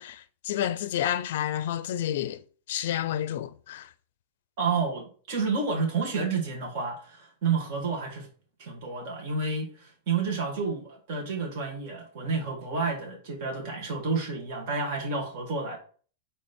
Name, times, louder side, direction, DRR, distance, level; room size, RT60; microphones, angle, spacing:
voice 1, 0.0-2.4 2.7-3.9, left 11 dB, 55° left, 0.5 m, -30 dB
voice 2, 4.6-8.3 8.6-15.8, right 4 dB, 40° right, 2.2 m, -30 dB
9.0 x 3.3 x 4.4 m
supercardioid pair, 180°, 0 cm